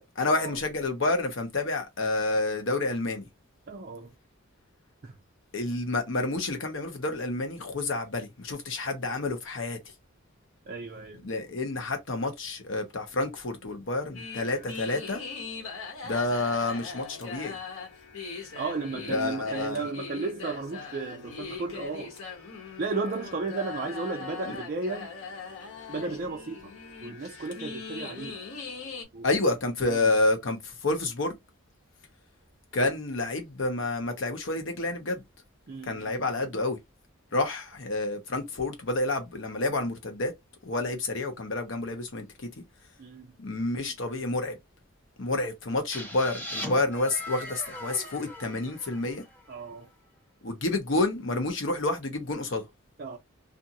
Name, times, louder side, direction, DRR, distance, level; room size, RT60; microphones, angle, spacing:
voice 1, 0.0-3.2 5.5-9.8 11.2-15.2 16.0-17.6 19.1-19.8 24.5-24.6 29.2-31.4 32.7-35.2 35.9-36.8 37.3-40.3 40.6-42.5 43.4-44.6 45.2-49.2 50.4-52.6, left 2 dB, 65° left, 0.8 m, -29 dB
voice 2, 3.7-4.1 5.0-5.1 10.7-11.3 18.5-22.2 22.8-25.1 25.9-26.7 27.0-28.4 29.1-29.4 29.8-30.1 35.7-36.3 43.0-43.4 49.5-49.9 53.0-53.2, right 3 dB, 45° right, 0.4 m, -34 dB
sound 1, 14.1-29.1, left 4 dB, 90° left, 1.0 m, -40 dB
sound 2, 45.9-49.6, left 1 dB, 10° left, 0.8 m, -40 dB
2.5 x 2.5 x 2.7 m
head